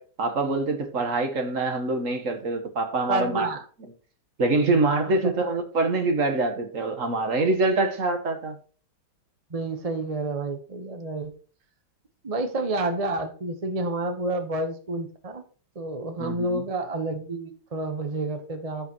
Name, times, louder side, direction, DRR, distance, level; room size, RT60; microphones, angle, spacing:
voice 1, 0.0-3.5 4.4-8.6 16.2-16.6, right 3 dB, 45° right, 1.5 m, -25 dB
voice 2, 3.1-3.6 9.5-11.3 12.2-15.4 15.7-18.9, right 2 dB, 30° right, 0.7 m, -29 dB
14.0 x 5.3 x 3.0 m
omnidirectional pair, 2.2 m